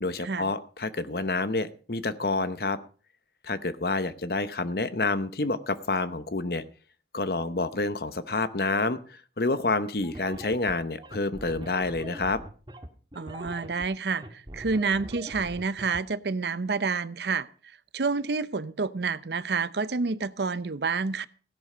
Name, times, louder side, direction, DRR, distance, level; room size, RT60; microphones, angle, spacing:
voice 1, 0.0-2.8 3.4-6.6 7.1-12.4, left 3 dB, 60° left, 13 dB, 0.9 m, -28 dB
sound 1, 10.0-16.0, equal, 25° right, 1.6 m, -42 dB
voice 2, 13.1-17.5 17.9-21.3, right 4 dB, 70° right, 16 dB, 0.7 m, -29 dB
16.0 x 11.0 x 5.0 m, 0.40 s
head